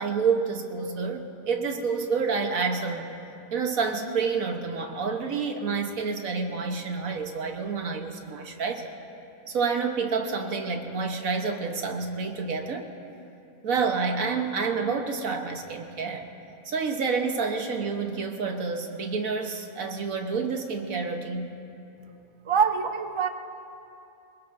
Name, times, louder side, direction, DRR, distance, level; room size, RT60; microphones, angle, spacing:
voice 1, 0.0-3.1 3.5-8.9 9.5-12.9 13.6-16.3 16.6-21.5, right 5 dB, 80° right, 4 dB, 1.6 m, -28 dB
voice 2, 22.4-23.3, right 6 dB, 40° right, 7 dB, 0.4 m, -24 dB
24.0 x 21.5 x 2.7 m, 2.8 s
omnidirectional pair, 1.4 m